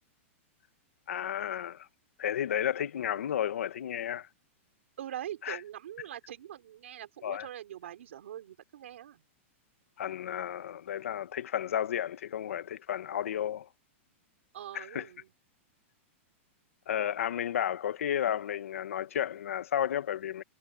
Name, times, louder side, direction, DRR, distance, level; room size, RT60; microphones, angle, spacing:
voice 1, 1.1-1.9 2.2-4.3 5.4-5.6 7.2-7.5 10.0-13.7 14.7-15.1 16.9-20.4, left 10 dB, 85° left, 1.7 m, -32 dB
voice 2, 5.0-9.2 14.5-15.3, right 11 dB, 65° right, 3.9 m, -43 dB
supercardioid pair, 180°, 7 cm